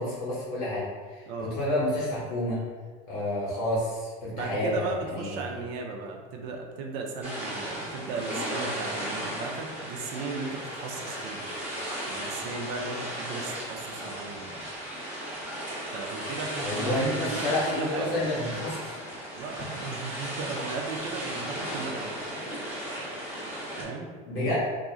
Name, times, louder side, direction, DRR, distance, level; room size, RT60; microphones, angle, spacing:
voice 1, 0.0-2.6 3.1-5.6 16.6-18.9 24.3-24.6, left 1 dB, 50° left, -6 dB, 0.7 m, -30 dB
voice 2, 4.3-11.5 12.0-14.6 15.9-18.2 19.4-22.1 23.8-24.6, right 4 dB, 60° right, 1 dB, 0.5 m, -36 dB
sound 1, 7.2-23.8, right 1 dB, 10° right, 0.7 m, -35 dB
2.8 x 2.4 x 2.3 m, 1.5 s
cardioid pair, 160°, 19 cm